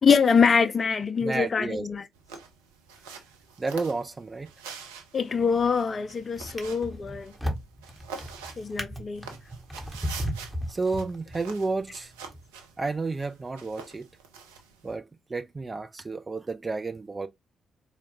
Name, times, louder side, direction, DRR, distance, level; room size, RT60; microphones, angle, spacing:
voice 1, 0.0-2.0 5.1-7.3 8.6-9.2, left 5 dB, 40° left, 0.6 m, -24 dB
voice 2, 1.2-1.9 3.6-4.5 10.7-12.1 12.8-14.1 14.8-17.3, right 3 dB, 30° right, 0.6 m, -31 dB
sound 1, 2.1-14.9, right 5 dB, 75° right, 0.6 m, -46 dB
Drawer open or close, 5.4-5.8 6.4-11.6 12.3-12.4, equal, 5° right, 1.2 m, -35 dB
4.4 x 2.4 x 2.7 m
figure-of-eight pair, 40°, 0 cm